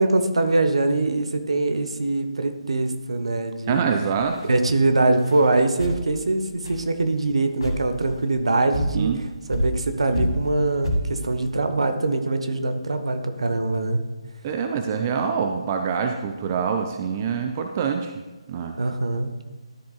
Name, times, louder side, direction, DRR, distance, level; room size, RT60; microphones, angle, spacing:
voice 1, 0.0-3.8 4.5-9.1 9.5-14.0 18.8-19.3, right 2 dB, 65° right, 8 dB, 0.9 m, -23 dB
voice 2, 3.7-4.4 8.9-9.2 14.4-18.1 18.5-18.8, right 6 dB, 25° right, 5 dB, 0.4 m, -25 dB
sound 1, 4.2-4.4 5.1-5.5 5.8-6.0 6.6-6.8 7.3-7.4 7.6-8.2 8.7-9.0 9.5-9.9 10.1-10.5 10.8-11.1, equal, 60° left, 2.2 m, -27 dB
12.5 x 7.0 x 2.4 m, 1.2 s
figure-of-eight pair, 145°, 3 cm